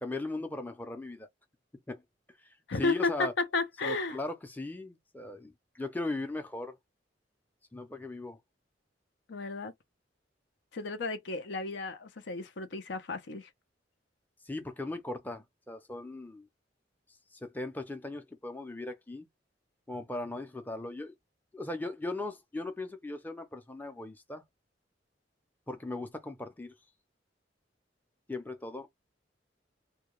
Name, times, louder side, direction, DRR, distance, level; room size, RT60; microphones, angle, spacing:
voice 1, 0.0-1.3 1.9-2.0 2.8-3.3 3.8-6.8 7.7-8.4 14.5-16.5 17.4-19.3 19.9-21.1 21.5-24.4 25.7-26.7 28.3-28.9, left 2 dB, 10° left, 0.5 m, -38 dB
voice 2, 2.7-4.2 9.3-9.7 10.7-13.5, left 3 dB, 75° left, 0.6 m, -33 dB
2.3 x 2.2 x 3.0 m
head